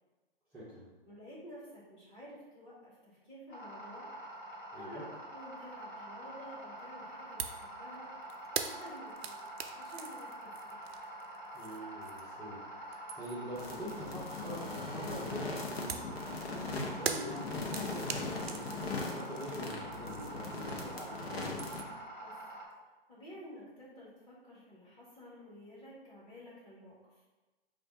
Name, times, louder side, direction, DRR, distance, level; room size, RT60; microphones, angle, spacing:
voice 1, 0.5-0.9 4.7-5.0 11.5-12.6 13.1-16.2 16.5-21.4, equal, 5° right, -12 dB, 0.6 m, -45 dB
voice 2, 1.0-4.1 4.7-5.0 5.3-8.1 8.6-9.3 9.7-10.8 22.2-22.4 23.1-27.0, equal, 15° left, -8 dB, 1.2 m, -51 dB
sound 1, 3.5-22.6, right 1 dB, 55° left, 1.3 m, -46 dB
sound 2, 7.4-7.7 8.0-12.4 12.8-13.5 15.9-21.0 21.3-22.0, right 6 dB, 85° right, 0.5 m, -42 dB
sound 3, 13.6-21.8, left 3 dB, 80° left, 0.9 m, -40 dB
3.3 x 2.5 x 4.4 m, 1.2 s
hypercardioid pair, 140°, 30 cm